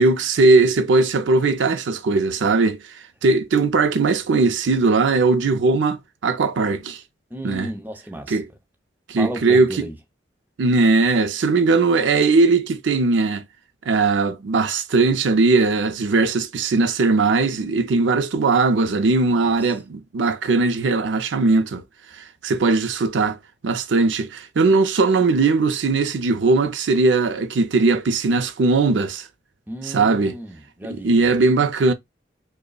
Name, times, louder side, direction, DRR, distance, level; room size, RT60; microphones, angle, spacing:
voice 1, 0.0-2.9 3.2-7.0 7.4-7.7 8.3-8.5 9.1-9.9 10.6-13.5 13.9-21.8 22.1-23.4 23.6-29.3 29.8-30.4 30.9-31.9, right 3 dB, 90° right, 0.5 m, -19 dB
voice 2, 7.3-8.4 9.2-10.0 19.3-19.6 29.7-31.4, equal, 10° right, 0.6 m, -34 dB
5.1 x 2.1 x 2.3 m
head